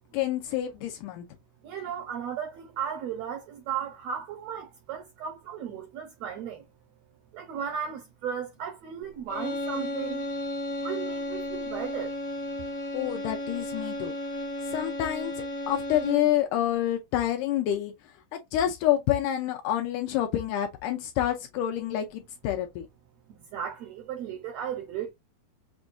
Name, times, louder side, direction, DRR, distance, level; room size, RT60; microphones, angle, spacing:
voice 1, 0.1-1.3 12.9-14.1 14.7-15.3 15.7-17.9 18.3-22.9, left 12 dB, 80° left, 1.9 m, -28 dB
voice 2, 1.6-6.7 7.3-10.2 10.8-12.2 23.5-25.1, right 8 dB, 80° right, 1.5 m, -35 dB
sound 1, 9.3-16.4, left 1 dB, 55° left, 0.8 m, -34 dB
6.0 x 2.2 x 2.5 m
omnidirectional pair, 4.0 m